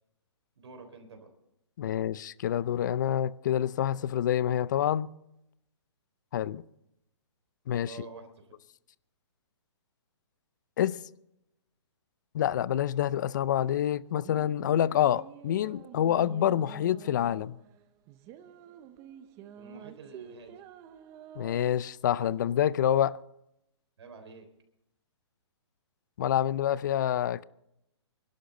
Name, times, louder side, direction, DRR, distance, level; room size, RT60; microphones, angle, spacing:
voice 1, 0.6-1.3 7.9-8.3 19.6-20.6 24.0-24.5, right 4 dB, 65° right, 3.7 m, -47 dB
voice 2, 1.8-5.1 6.3-6.6 7.7-8.0 10.8-11.0 12.3-17.6 21.4-23.2 26.2-27.4, left 10 dB, 40° left, 0.5 m, -27 dB
sound 1, 13.8-22.4, right 10 dB, 15° right, 0.5 m, -49 dB
26.0 x 12.0 x 3.9 m
hypercardioid pair, 160°, 15 cm